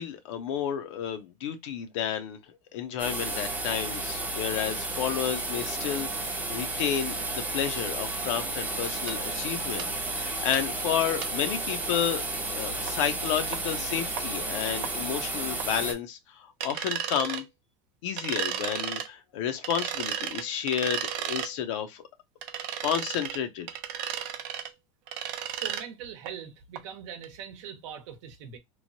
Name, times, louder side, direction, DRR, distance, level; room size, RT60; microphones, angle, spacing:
voice 1, 0.0-2.4 2.7-12.3 12.5-17.4 18.0-22.0 22.8-23.7, left 9 dB, 75° left, 0.6 m, -31 dB
sound 1, 3.0-15.9, right 2 dB, 10° right, 0.5 m, -32 dB
sound 2, 9.1-9.2 9.8-9.9 10.5-10.6 11.2-11.3 12.9-13.0 13.5-13.6 14.2-14.3 14.8-14.9 15.6-15.7 16.6-17.4 18.2-19.1 19.6-21.5 22.4-23.4 23.7-24.7 25.1-25.8 26.3-26.4 26.8-26.9 27.2-27.3, right 9 dB, 60° right, 0.5 m, -33 dB
voice 2, 25.4-28.6, right 8 dB, 75° right, 0.8 m, -42 dB
3.1 x 2.0 x 2.6 m
supercardioid pair, 135°, 16 cm